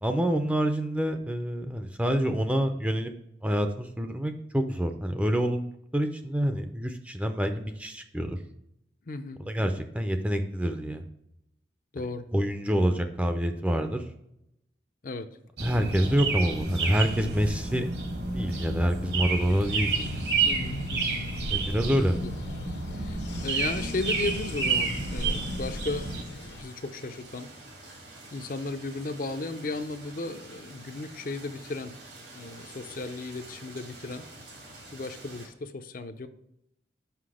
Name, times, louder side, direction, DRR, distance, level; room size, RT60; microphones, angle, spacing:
voice 1, 0.0-3.1 3.4-5.7 5.9-8.4 9.5-11.0 12.3-14.0 15.6-17.9 18.2-20.3 21.5-22.2, equal, 5° right, 6 dB, 0.5 m, -27 dB
voice 2, 9.1-9.9 11.9-12.3 12.9-13.0 15.0-15.3 18.5-18.7 20.4-21.2 22.2-22.3 22.9-27.5 28.3-31.9 32.3-34.3 34.9-36.3, left 2 dB, 50° left, 8 dB, 0.5 m, -35 dB
sound 1, 15.6-26.2, right 3 dB, 65° right, 1.3 m, -30 dB
sound 2, 19.3-26.6, left 2 dB, 75° left, 0.9 m, -45 dB
sound 3, 23.3-35.5, right 2 dB, 85° right, 2.7 m, -48 dB
5.9 x 5.6 x 4.8 m, 0.79 s
head